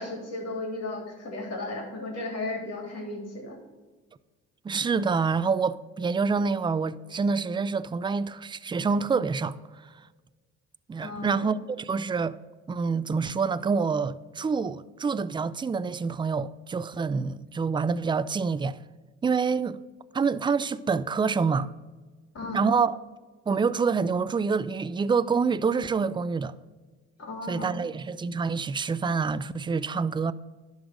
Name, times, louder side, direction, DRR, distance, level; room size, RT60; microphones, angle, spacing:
voice 1, 0.0-3.6 11.0-11.5 22.3-22.7 27.2-27.8, left 2 dB, 50° left, 3.2 m, -35 dB
voice 2, 4.6-9.6 10.9-12.4 12.7-18.8 19.2-19.8 20.1-21.7 22.5-23.0 23.5-26.5 27.5-30.3, right 5 dB, 15° right, 0.4 m, -27 dB
11.0 x 4.1 x 6.2 m
hypercardioid pair, 60°, 33 cm